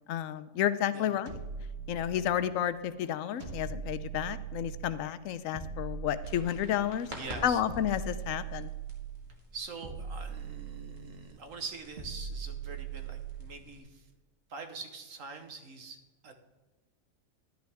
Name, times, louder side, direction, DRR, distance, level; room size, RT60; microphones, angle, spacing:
voice 1, 0.1-1.4 1.9-7.1 7.4-8.7, left 10 dB, 75° left, 13 dB, 1.0 m, -31 dB
sound 1, 1.3-2.6 3.4-5.0 5.5-7.0 7.7-9.3 9.8-11.2 12.0-13.6, right 6 dB, 50° right, 1.5 m, -40 dB
sound 2, 6.2-13.8, equal, 35° right, 2.1 m, -49 dB
voice 2, 7.1-7.6 9.5-14.1 14.5-16.3, right 4 dB, 70° right, 6 dB, 1.5 m, -44 dB
11.5 x 10.5 x 3.5 m, 1.2 s
omnidirectional pair, 1.4 m